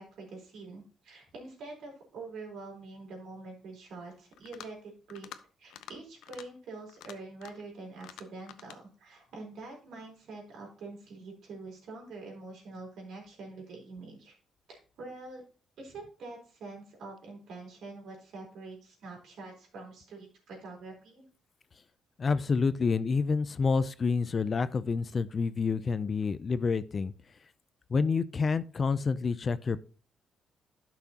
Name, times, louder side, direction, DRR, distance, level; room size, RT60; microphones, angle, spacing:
voice 1, 0.0-5.3 5.6-14.3 14.7-15.4 15.8-21.3, right 3 dB, 75° right, 3.9 m, -45 dB
sound 1, 4.3-4.8 5.1-5.4 5.7-6.0 6.2-6.5 6.9-7.7 8.0-8.8, left 11 dB, 90° left, 0.6 m, -48 dB
voice 2, 22.2-27.1 27.9-29.8, left 5 dB, 40° left, 0.5 m, -28 dB
11.5 x 6.1 x 2.9 m
cardioid pair, 90°, 0 cm